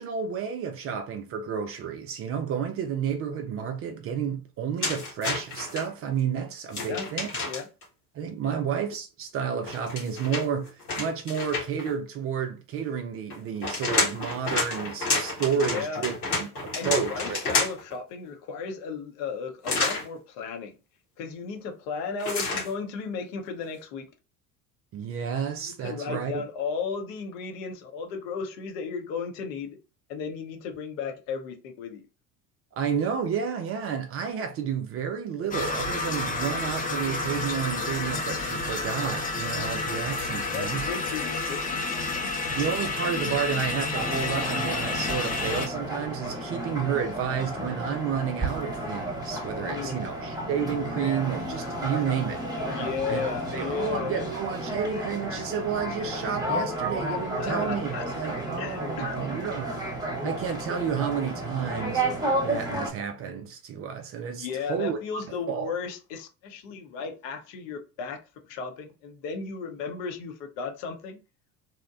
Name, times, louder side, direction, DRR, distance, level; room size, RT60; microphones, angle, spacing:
voice 1, 0.0-7.3 8.1-17.4 24.9-26.4 32.8-40.9 42.5-52.4 53.1-59.7 60.2-65.7, right 7 dB, 35° right, 0.4 m, -31 dB
sound 1, 4.8-5.8 6.7-7.8 9.6-11.9 13.3-17.9 19.6-20.1 22.2-22.7, left 3 dB, 90° left, 1.2 m, -29 dB
voice 2, 6.7-7.1 7.4-7.7 8.4-8.6 15.5-16.0 16.7-20.7 21.2-24.1 25.4-29.8 30.1-32.0 40.5-41.9 42.2-42.3 49.6-50.1 52.7-54.3 57.3-58.1 58.6-59.2 59.4-59.5 64.4-68.2 68.5-71.2, left 5 dB, 60° left, 0.8 m, -35 dB
sound 2, 35.5-45.7, left 3 dB, 20° left, 0.7 m, -30 dB
sound 3, 43.9-62.9, right 1 dB, 10° right, 0.9 m, -32 dB
2.8 x 2.1 x 2.4 m
hypercardioid pair, 70°, 44 cm